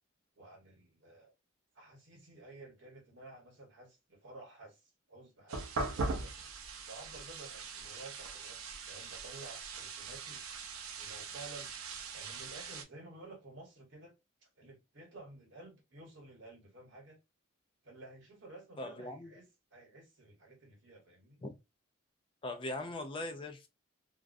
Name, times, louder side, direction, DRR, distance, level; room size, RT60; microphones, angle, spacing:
voice 1, 0.4-1.3 1.7-6.3 6.9-10.4 11.0-11.7 12.1-14.2 14.4-17.2 17.8-21.4, right 2 dB, 55° right, 1.1 m, -53 dB
sound 1, 5.5-12.8, right 3 dB, 85° right, 0.5 m, -41 dB
voice 2, 18.8-19.3 21.4-21.5 22.4-23.7, left 2 dB, 25° left, 0.3 m, -40 dB
2.3 x 2.1 x 2.5 m
head